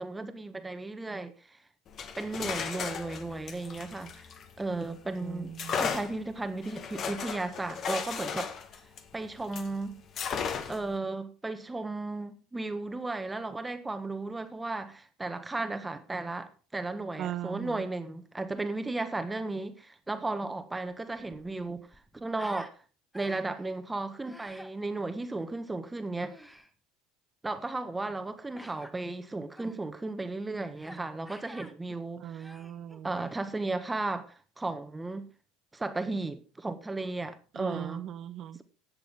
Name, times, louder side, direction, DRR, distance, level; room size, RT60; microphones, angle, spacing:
voice 1, 0.0-1.6 2.2-4.3 4.6-8.5 9.1-10.0 10.7-21.9 22.1-22.7 23.1-26.4 27.4-32.6 33.0-35.3 35.7-38.0, right 2 dB, 15° right, 1.5 m, -35 dB
sound 1, 1.9-4.9 5.6-9.7 10.2-10.9, left 6 dB, 45° left, 1.5 m, -35 dB
voice 2, 5.2-5.9 17.2-17.8 32.2-33.1 37.5-38.6, right 11 dB, 50° right, 0.8 m, -39 dB
Human voice, 21.1-22.7 23.1-23.6 24.2-24.7 26.2-26.7 28.5-28.9 29.5-29.8 30.8-31.0 31.3-31.7 32.3-33.4, equal, 5° left, 1.5 m, -48 dB
17.5 x 6.8 x 3.7 m
hypercardioid pair, 85°, 0 cm